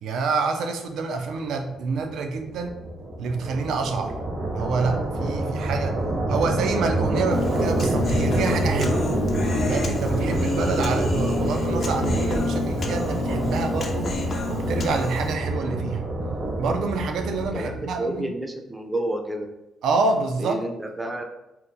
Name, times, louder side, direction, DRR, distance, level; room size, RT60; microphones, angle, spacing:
voice 1, 0.0-2.7 3.2-4.1 4.5-6.0 6.3-9.0 9.7-16.0 16.6-18.2 19.8-20.6, right 4 dB, 75° right, 5 dB, 0.4 m, -27 dB
sound 1, 1.8-18.0, right 1 dB, 60° right, 0.8 m, -27 dB
Human voice, 7.3-15.3, left 3 dB, 50° left, 0.5 m, -29 dB
voice 2, 17.5-19.5 20.4-21.2, right 1 dB, 15° right, 4 dB, 0.5 m, -30 dB
2.8 x 2.1 x 3.6 m, 0.94 s
cardioid pair, 90°, 0 cm